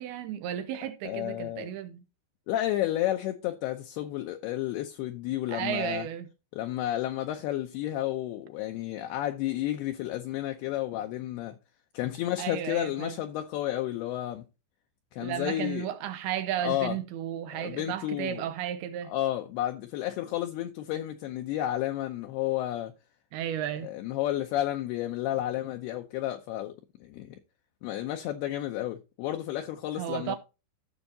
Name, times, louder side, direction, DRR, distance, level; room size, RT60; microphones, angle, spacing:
voice 1, 0.0-2.0 5.5-6.3 12.4-13.2 15.2-19.1 23.3-23.9 30.0-30.4, right 11 dB, 85° right, 2.3 m, -34 dB
voice 2, 1.0-1.7 2.5-6.1 6.5-11.6 11.9-14.4 15.1-15.9 16.6-17.0 17.5-18.4 19.1-22.9 23.8-26.7 27.0-27.4 27.8-30.4, left 13 dB, 80° left, 2.4 m, -31 dB
15.0 x 6.3 x 2.8 m
omnidirectional pair, 5.1 m